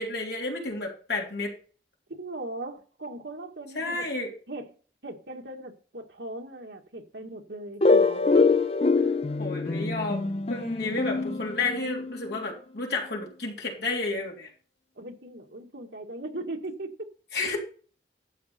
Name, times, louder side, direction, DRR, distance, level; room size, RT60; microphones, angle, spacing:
voice 1, 0.0-1.5 3.8-4.3 7.9-8.2 9.4-14.5 17.3-17.6, left 3 dB, 65° left, 3.5 m, -31 dB
voice 2, 2.2-4.1 4.5-4.7 5.0-7.9 10.8-11.2 15.0-17.1, right 2 dB, 80° right, 2.0 m, -39 dB
sound 1, 7.8-12.4, left 3 dB, 35° left, 0.5 m, -24 dB
12.0 x 7.6 x 4.4 m
head